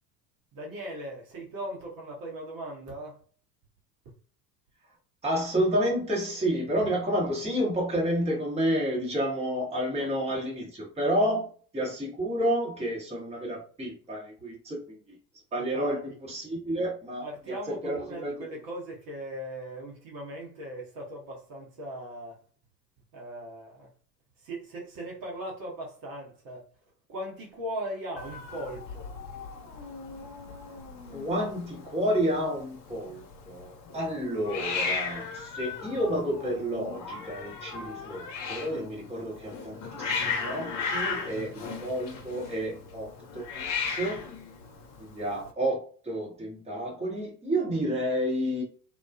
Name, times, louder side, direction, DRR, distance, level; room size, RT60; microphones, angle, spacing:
voice 1, 0.5-3.2 10.0-10.3 15.6-16.2 17.2-22.4 23.1-23.9 24.4-26.6 27.1-29.1, right 1 dB, 45° right, 0.9 m, -39 dB
voice 2, 5.2-11.5 11.7-15.1 15.5-16.0 16.3-17.2 17.7-18.3 31.1-44.2 45.0-48.6, equal, 15° right, 1.0 m, -30 dB
Hiss, 28.2-45.5, left 5 dB, 40° left, 0.8 m, -36 dB
2.3 x 2.2 x 2.4 m
figure-of-eight pair, 70°, 48 cm